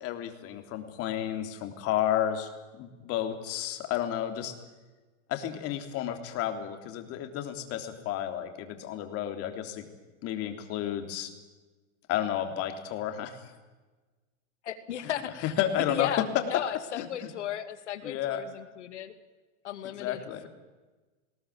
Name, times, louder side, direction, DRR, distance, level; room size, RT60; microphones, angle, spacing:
voice 1, 0.0-2.5 2.8-4.5 5.3-9.9 10.2-11.3 12.1-13.4 15.0-15.1 15.6-16.1 16.9-17.3 18.0-18.4 19.8-20.5, left 11 dB, 45° left, 6 dB, 3.5 m, -32 dB
voice 2, 14.6-15.5 15.9-19.1 19.6-20.5, left 10 dB, 85° left, 10 dB, 2.6 m, -36 dB
21.0 x 17.5 x 8.8 m, 1.2 s
supercardioid pair, 125°, 34 cm